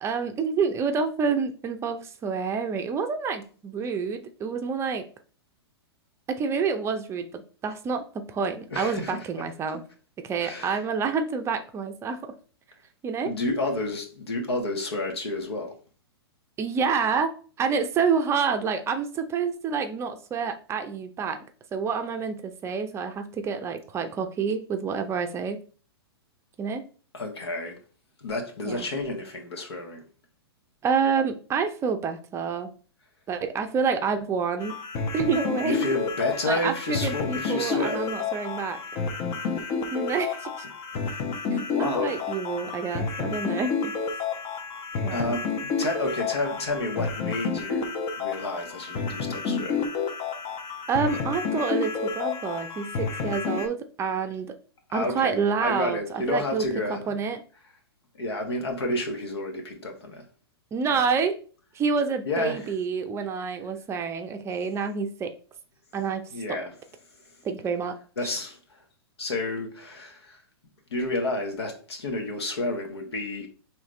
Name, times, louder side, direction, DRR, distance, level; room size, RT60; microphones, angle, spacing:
voice 1, 0.0-5.1 6.3-9.8 10.2-12.3 13.0-13.3 16.6-17.3 17.6-21.4 21.7-25.6 26.6-26.9 28.7-28.9 30.8-32.7 33.3-34.8 35.1-35.7 36.5-38.8 39.9-40.5 41.5-43.9 45.0-45.4 50.9-54.5 54.9-56.6 56.9-57.4 60.7-61.3 61.7-65.3 65.9-66.6 67.4-68.0, right 5 dB, 20° right, 0.5 m, -28 dB
voice 2, 8.7-9.2 9.7-9.8 10.4-10.8 13.2-15.7 27.1-27.8 28.2-30.0 35.6-38.1 40.9-41.2 41.7-42.2 45.1-49.9 54.9-57.1 58.2-60.2 62.2-62.7 66.3-66.7 68.2-68.6 69.2-70.4 70.9-73.5, left 2 dB, 75° left, 1.4 m, -30 dB
sound 1, 34.6-53.7, left 5 dB, 40° left, 0.8 m, -30 dB
4.8 x 3.1 x 3.2 m
hypercardioid pair, 115°, 14 cm